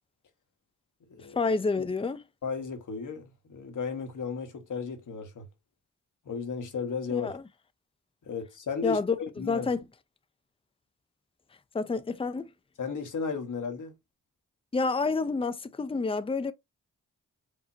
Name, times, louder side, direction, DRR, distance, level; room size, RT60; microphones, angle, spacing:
voice 1, 1.4-2.2 7.1-7.4 8.8-9.8 11.7-12.5 14.7-16.5, left 4 dB, 15° left, 0.6 m, -29 dB
voice 2, 2.4-5.5 6.2-7.3 8.2-9.0 9.4-9.7 12.8-13.9, left 5 dB, 60° left, 1.4 m, -34 dB
5.0 x 2.7 x 2.8 m
cardioid pair, 50°, 34 cm